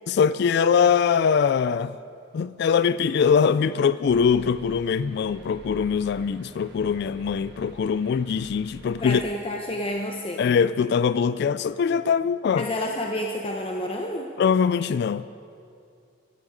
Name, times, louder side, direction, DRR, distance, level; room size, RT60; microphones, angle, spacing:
voice 1, 0.1-1.9 2.3-9.2 10.4-12.7 14.4-15.2, left 6 dB, 55° left, 0.3 m, -22 dB
sound 1, 4.1-9.3, right 2 dB, 55° right, 0.9 m, -47 dB
voice 2, 9.0-10.4 12.6-14.3, left 1 dB, 30° left, 0.8 m, -29 dB
15.0 x 13.5 x 5.1 m
head